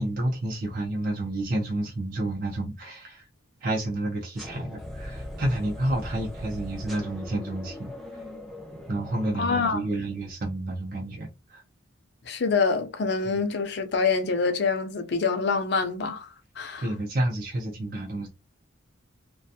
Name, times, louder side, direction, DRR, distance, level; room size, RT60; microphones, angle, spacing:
voice 1, 0.0-3.3 3.6-7.9 8.9-11.6 13.2-13.4 16.8-18.3, right 1 dB, 45° right, 0.6 m, -30 dB
sound 1, 4.4-10.3, left 1 dB, ahead, 0.5 m, -40 dB
voice 2, 9.3-10.0 12.3-16.9, left 4 dB, 55° left, 0.5 m, -26 dB
2.4 x 2.2 x 2.7 m
head